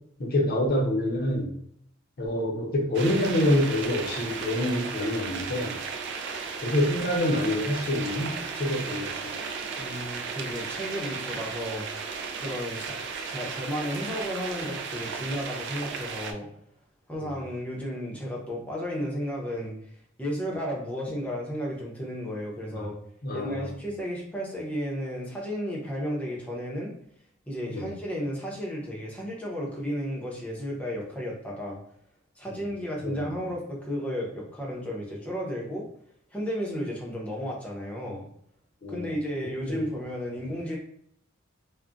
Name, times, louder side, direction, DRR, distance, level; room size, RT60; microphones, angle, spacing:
voice 1, 0.2-1.5 2.2-5.8 6.6-9.3 17.2-17.3 22.7-22.9 23.2-23.8 27.7-27.9 33.0-33.2 38.8-39.1 39.7-39.9, left 1 dB, 45° left, -2 dB, 0.6 m, -27 dB
sound 1, 2.9-16.3, right 5 dB, 55° right, 0.4 m, -35 dB
voice 2, 9.8-11.8 12.4-12.9 13.2-16.5 17.1-19.8 20.2-22.9 23.3-26.9 27.5-31.8 32.4-35.8 36.3-38.2 38.9-40.8, equal, 5° left, -3 dB, 0.6 m, -33 dB
2.3 x 2.1 x 3.7 m, 0.68 s
head